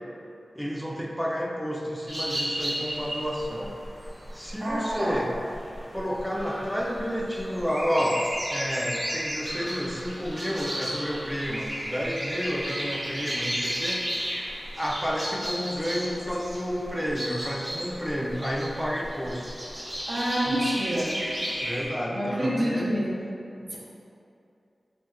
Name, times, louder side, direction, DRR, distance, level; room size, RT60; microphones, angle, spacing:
voice 1, 0.6-3.7 4.3-5.3 5.9-14.0 14.8-19.5 20.5-20.6 21.6-22.9 23.6-23.8, equal, 5° left, -2 dB, 0.4 m, -30 dB
sound 1, 2.1-21.9, equal, 25° right, 0.7 m, -34 dB
voice 2, 4.6-5.2 20.1-21.1 22.1-23.1 23.7-23.8, equal, 55° right, -6 dB, 0.8 m, -27 dB
3.7 x 2.6 x 3.2 m, 2.6 s
wide cardioid pair, 75°, 0 cm